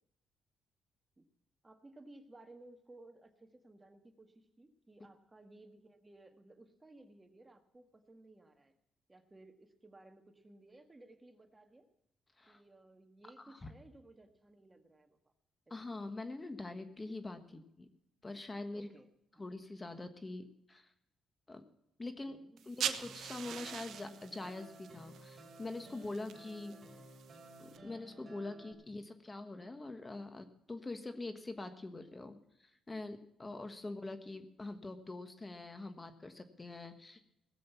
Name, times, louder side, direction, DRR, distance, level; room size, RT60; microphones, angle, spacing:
voice 1, 1.6-8.7 9.1-11.9 12.5-15.2 17.5-17.6 18.7-19.4 22.2-22.7 25.8-27.0 28.7-29.0 33.8-33.9, right 2 dB, 20° right, 6 dB, 1.6 m, -59 dB
voice 2, 13.4-13.7 15.7-17.9 18.2-18.9 19.4-20.9 21.5-21.6 22.0-26.7 27.6-37.2, left 2 dB, 20° left, 9 dB, 1.3 m, -44 dB
sound 1, 22.6-27.8, right 9 dB, 70° right, 1.0 m, -44 dB
sound 2, 23.0-28.7, right 1 dB, 35° right, 4.0 m, -55 dB
17.5 x 7.7 x 7.1 m, 0.79 s
cardioid pair, 90°, 0 cm